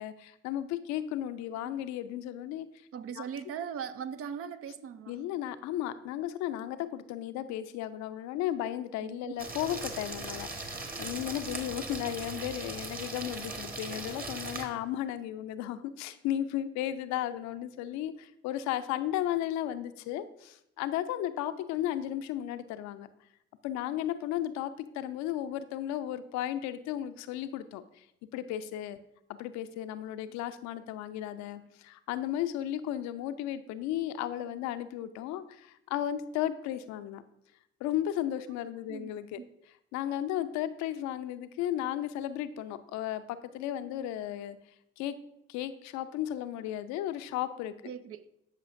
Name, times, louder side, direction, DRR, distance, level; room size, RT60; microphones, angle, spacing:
voice 1, 0.0-2.7 3.2-3.3 5.1-23.1 23.6-27.8 28.3-29.0 29.3-37.2 37.8-39.4 39.9-44.6 45.0-45.1 45.5-47.7, left 12 dB, 65° left, 0.5 m, -34 dB
voice 2, 2.9-5.2 9.0-9.3 30.0-30.2 38.8-39.5 47.8-48.3, right 7 dB, 50° right, 0.5 m, -40 dB
sound 1, 9.4-14.6, right 2 dB, 30° right, 1.5 m, -39 dB
13.5 x 5.5 x 2.6 m
hypercardioid pair, 45°, 30 cm